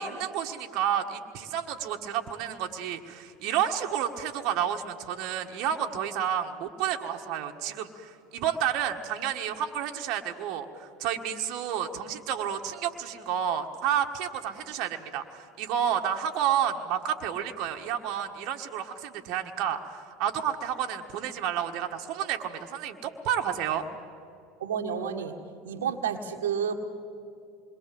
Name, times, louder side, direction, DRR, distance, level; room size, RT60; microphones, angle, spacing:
voice 1, 0.0-23.9, right 9 dB, 60° right, 4 dB, 1.6 m, -30 dB
voice 2, 24.6-25.4 25.6-26.8, right 7 dB, 85° right, 3 dB, 1.6 m, -30 dB
27.5 x 22.0 x 7.8 m, 2.6 s
hypercardioid pair, 80°, 0 cm